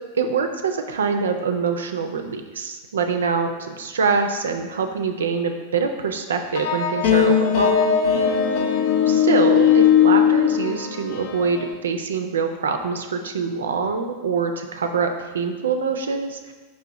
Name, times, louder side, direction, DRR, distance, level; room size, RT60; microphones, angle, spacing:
voice 1, 0.2-7.7 9.1-16.5, right 5 dB, 65° right, 6 dB, 0.3 m, -24 dB
sound 1, 6.6-11.7, left 8 dB, 50° left, 0.4 m, -18 dB
5.2 x 2.8 x 3.6 m, 1.3 s
figure-of-eight pair, 90°, 0 cm